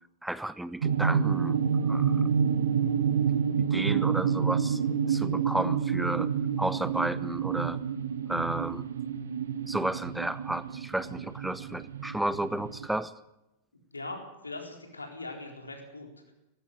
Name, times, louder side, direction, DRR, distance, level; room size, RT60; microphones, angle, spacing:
voice 1, 0.2-1.6 1.9-2.2 3.6-4.8 5.1-6.3 6.6-7.8 8.3-8.9 9.6-13.1, right 1 dB, 5° right, 16 dB, 0.7 m, -32 dB
sound 1, 0.8-12.9, right 7 dB, 65° right, 1.2 m, -28 dB
voice 2, 13.9-16.3, left 2 dB, 80° left, 3 dB, 4.2 m, -41 dB
18.5 x 15.5 x 9.4 m, 0.94 s
figure-of-eight pair, 90°, 0 cm